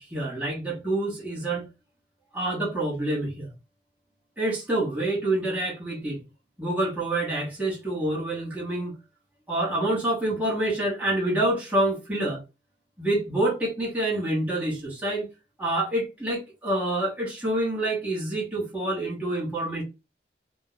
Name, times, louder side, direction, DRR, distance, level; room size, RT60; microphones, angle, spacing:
voice 1, 0.1-1.6 2.3-3.5 4.4-6.2 6.6-8.9 9.5-12.4 13.0-15.3 15.6-19.8, right 1 dB, 10° right, 1.0 m, -27 dB
2.5 x 2.2 x 3.8 m
head